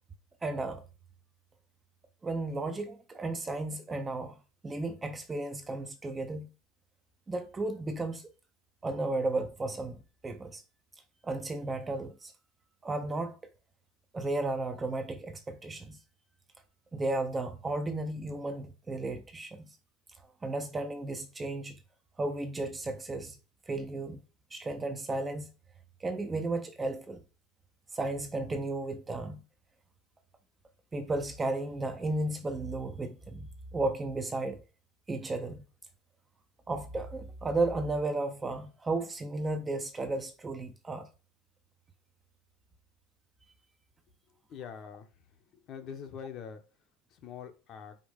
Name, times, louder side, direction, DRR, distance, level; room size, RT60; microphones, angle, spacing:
voice 1, 0.4-0.8 2.2-4.4 4.6-6.5 7.3-8.2 8.8-10.6 11.2-12.3 12.8-13.4 14.1-16.0 16.9-19.7 20.4-21.8 22.2-23.4 23.7-24.2 24.5-25.5 26.0-27.2 27.9-29.4 30.9-34.6 35.1-35.6 36.7-41.1, right 2 dB, 15° right, 0.5 m, -34 dB
voice 2, 44.5-45.1 45.7-46.6 47.1-48.0, left 7 dB, 35° left, 0.9 m, -43 dB
5.1 x 4.1 x 5.1 m
cardioid pair, 170°, 0 cm